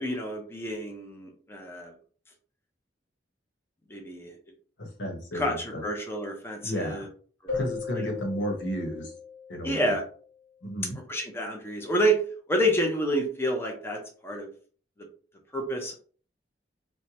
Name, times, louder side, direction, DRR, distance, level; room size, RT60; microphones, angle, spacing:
voice 1, 0.0-1.9 3.9-4.4 5.3-7.1 7.4-7.6 9.6-10.0 11.1-12.2 12.5-14.5 15.5-15.9, equal, 15° left, 2 dB, 0.6 m, -28 dB
voice 2, 4.8-5.8 6.6-7.1 7.5-9.1 9.5-9.9 10.6-11.0, equal, 85° left, 2 dB, 1.1 m, -33 dB
Keyboard (musical), 7.5-10.2, left 6 dB, 65° left, 1.4 m, -37 dB
4.4 x 2.2 x 2.9 m, 0.42 s
head